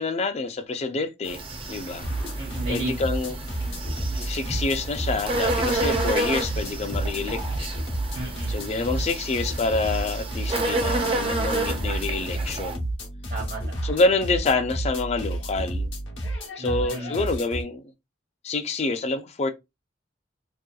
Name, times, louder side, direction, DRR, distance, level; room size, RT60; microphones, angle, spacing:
voice 1, 0.0-1.4 1.7-2.1 2.7-3.4 4.1-7.7 8.5-12.8 13.8-15.9 16.6-17.8 18.4-19.5, left 3 dB, 35° left, 0.4 m, -27 dB
sound 1, 1.2-12.7, right 2 dB, 30° right, 0.5 m, -30 dB
sound 2, 2.0-17.6, right 1 dB, 75° left, 0.9 m, -31 dB
voice 2, 2.4-2.9 8.1-8.5 13.3-13.8 16.6-17.2, right 2 dB, 55° right, 0.8 m, -33 dB
2.8 x 2.2 x 2.3 m
head